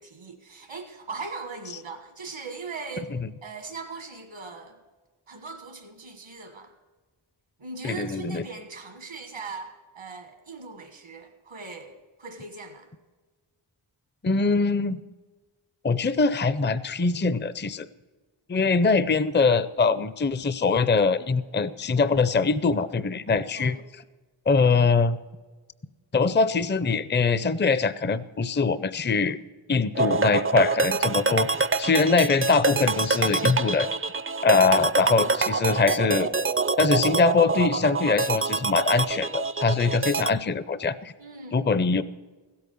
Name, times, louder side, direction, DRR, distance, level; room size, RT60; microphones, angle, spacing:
voice 1, 0.0-3.1 3.4-4.8 5.3-6.7 7.6-12.9 23.5-23.8 34.5-34.8 41.2-42.0, right 4 dB, 85° right, 5 dB, 1.6 m, -40 dB
voice 2, 7.8-8.4 14.2-15.0 15.8-17.9 18.5-23.8 24.5-25.2 26.1-29.4 29.7-31.5 31.8-33.9 34.4-36.3 36.8-41.1 41.5-42.0, left 4 dB, 25° left, 15 dB, 0.5 m, -23 dB
sound 1, 29.9-40.3, right 4 dB, 30° right, 0.4 m, -26 dB
16.0 x 8.6 x 7.0 m, 1.3 s
wide cardioid pair, 55°, 49 cm